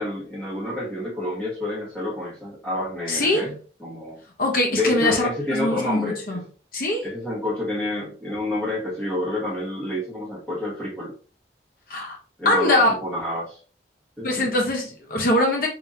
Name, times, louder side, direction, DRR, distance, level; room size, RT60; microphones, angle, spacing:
voice 1, 0.0-3.6 3.8-4.2 4.7-6.4 7.0-11.1 12.4-13.6 14.2-14.5, left 1 dB, 5° left, -8 dB, 1.9 m, -28 dB
voice 2, 3.1-3.4 4.4-6.4 6.7-7.0 11.9-12.2 12.4-12.9 14.2-15.7, left 1 dB, 50° left, 1 dB, 1.1 m, -22 dB
3.9 x 3.5 x 2.8 m, 0.39 s
head